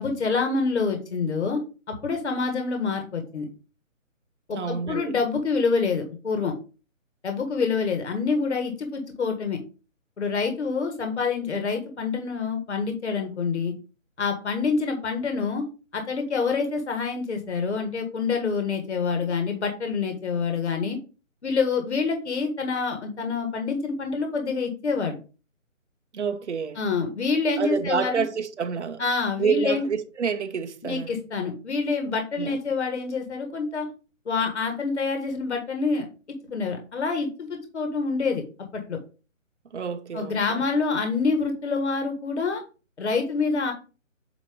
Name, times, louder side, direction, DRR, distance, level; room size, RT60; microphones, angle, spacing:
voice 1, 0.0-1.6 1.9-3.5 4.5-6.5 7.2-9.6 10.2-13.7 14.2-15.6 15.9-21.0 21.4-25.2 26.8-28.2 29.0-29.9 30.8-33.9 34.2-36.1 36.5-38.4 38.7-39.0 40.1-42.6 43.0-43.7, left 4 dB, 55° left, 1.6 m, -26 dB
voice 2, 4.5-5.1 26.1-26.8 27.6-29.0 29.4-31.2 32.4-32.6 39.7-40.7, right 6 dB, 60° right, 0.9 m, -28 dB
8.2 x 2.9 x 5.0 m
hypercardioid pair, 175°, 40 cm